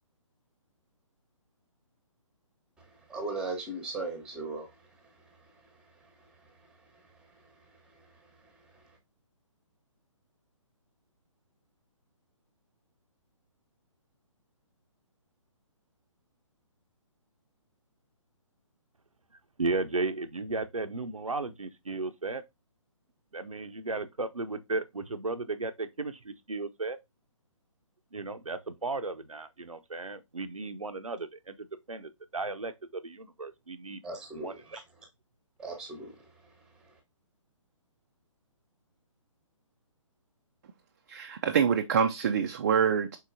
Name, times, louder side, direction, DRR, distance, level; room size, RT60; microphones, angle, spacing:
voice 1, 3.1-4.7 34.0-34.8 35.6-36.1, right 3 dB, 5° right, 1.0 m, -37 dB
voice 2, 19.6-22.4 23.3-27.0 28.1-34.0 34.3-34.8, right 3 dB, 85° right, 0.6 m, -35 dB
voice 3, 41.1-43.2, right 7 dB, 35° right, 0.4 m, -26 dB
4.6 x 4.0 x 2.6 m
figure-of-eight pair, 135°, 17 cm